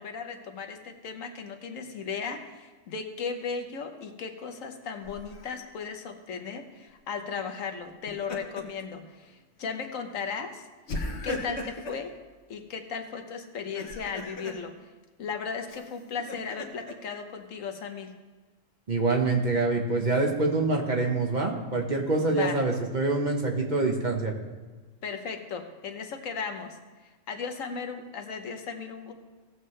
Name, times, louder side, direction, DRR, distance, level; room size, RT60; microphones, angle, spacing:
voice 1, 0.0-10.7 11.2-12.1 12.5-14.7 15.2-18.1 22.2-22.6 25.0-26.8 27.0-29.1, left 5 dB, 80° left, 5 dB, 1.3 m, -36 dB
Laughter, 5.0-5.6 7.9-8.8 9.2-9.4 10.9-12.0 13.6-14.6 15.7-16.9, left 2 dB, 60° left, 1.3 m, -37 dB
voice 2, 18.9-24.3, right 3 dB, 35° right, 1 dB, 1.2 m, -25 dB
17.0 x 7.4 x 3.2 m, 1.3 s
omnidirectional pair, 1.4 m